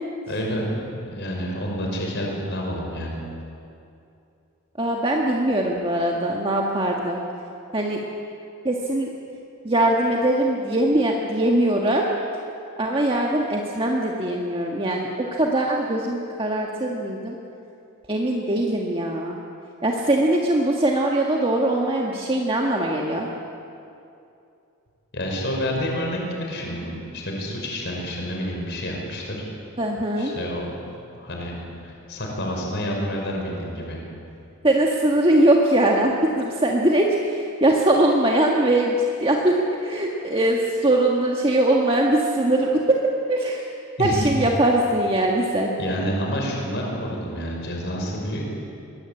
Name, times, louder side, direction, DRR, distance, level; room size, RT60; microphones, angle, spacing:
voice 1, 0.3-3.2 25.1-29.4 30.2-34.0 44.0-44.3 45.8-48.4, equal, 50° left, -1 dB, 5.4 m, -29 dB
voice 2, 4.8-7.2 7.7-8.0 8.6-9.1 9.6-12.1 12.8-17.4 18.1-19.4 19.8-23.3 29.8-30.3 34.6-43.6 44.0-45.7, right 1 dB, 25° right, -1 dB, 1.6 m, -21 dB
23.0 x 20.5 x 8.9 m, 2.6 s
head